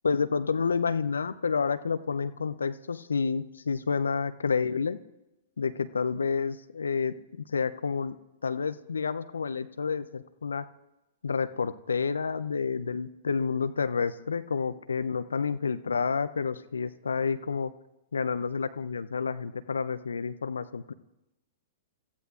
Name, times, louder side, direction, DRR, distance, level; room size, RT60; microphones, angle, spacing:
voice 1, 0.0-5.0 5.6-8.2 8.4-10.7 11.2-17.7 18.1-20.9, left 5 dB, 75° left, 12 dB, 0.6 m, -29 dB
29.5 x 14.5 x 2.5 m, 0.97 s
figure-of-eight pair, 105°, 0 cm